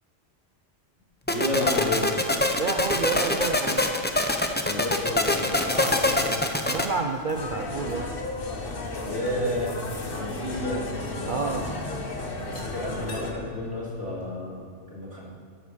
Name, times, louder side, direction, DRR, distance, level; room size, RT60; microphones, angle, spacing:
sound 1, 1.3-6.8, left 2 dB, 10° left, 0.7 m, -24 dB
voice 1, 1.3-2.1 4.6-6.4 9.0-10.9 11.2-11.7 12.4-15.2, left 1 dB, 80° right, -6 dB, 3.6 m, -31 dB
voice 2, 2.6-3.8 6.7-8.1 11.3-11.7, right 4 dB, 50° right, 4 dB, 0.7 m, -29 dB
sound 2, 3.7-14.3, equal, 10° right, 2.9 m, -49 dB
sound 3, 7.3-13.3, left 2 dB, 50° left, 1.4 m, -34 dB
13.0 x 8.2 x 6.5 m, 2.3 s
omnidirectional pair, 1.2 m